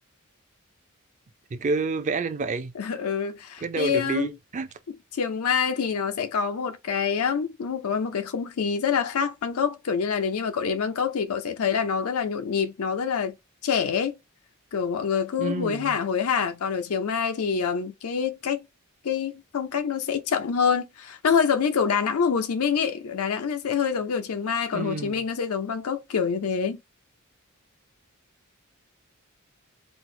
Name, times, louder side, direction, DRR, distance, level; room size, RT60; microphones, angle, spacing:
voice 1, 1.5-2.7 3.6-4.7 15.4-16.0 24.7-25.2, right 4 dB, 35° right, 0.4 m, -29 dB
voice 2, 2.8-4.3 5.1-13.3 13.6-14.1 14.7-18.6 19.0-26.8, left 6 dB, 90° left, 0.5 m, -26 dB
4.4 x 2.0 x 2.5 m
head